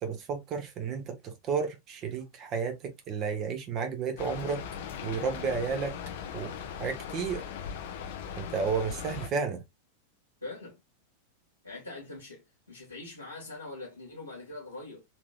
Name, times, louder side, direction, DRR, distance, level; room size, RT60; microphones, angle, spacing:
voice 1, 0.0-4.6 5.0-5.9 6.3-6.5 6.8-7.5 8.4-9.6, right 5 dB, 35° right, 1.0 m, -32 dB
Rain, 4.2-9.3, left 7 dB, 55° left, 0.7 m, -39 dB
voice 2, 10.4-10.8 11.6-12.4 12.7-15.0, left 2 dB, 85° left, 1.6 m, -42 dB
4.3 x 3.0 x 2.3 m
figure-of-eight pair, 90°, 0 cm